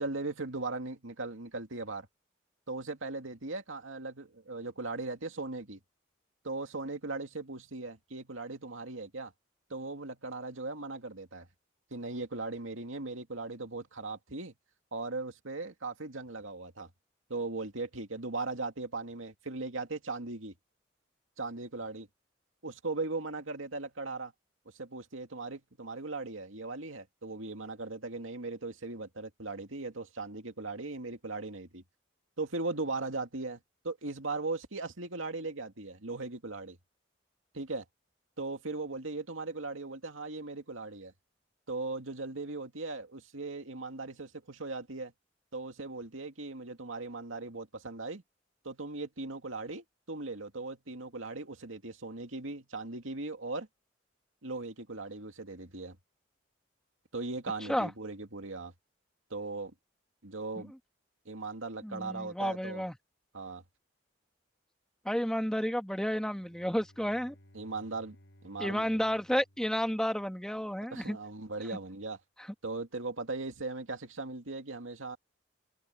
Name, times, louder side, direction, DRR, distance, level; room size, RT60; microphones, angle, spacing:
voice 1, 0.0-2.1 2.7-5.8 6.4-9.3 9.7-11.5 11.9-14.5 14.9-16.9 17.3-20.5 21.4-22.1 22.6-24.3 24.7-31.8 32.4-36.8 37.5-37.9 38.4-41.1 41.7-45.1 45.5-48.2 48.6-53.7 54.4-56.0 57.1-58.7 59.3-59.7 60.2-60.7 61.3-62.8 63.3-63.6 67.5-68.2 68.4-68.9 70.9-72.2 72.6-75.2, right 3 dB, 85° right, 2.5 m, -38 dB
voice 2, 61.8-62.9 65.0-67.3 68.6-71.2, equal, 5° left, 1.3 m, -31 dB
Bowed string instrument, 66.3-70.6, equal, 60° left, 7.4 m, -60 dB
head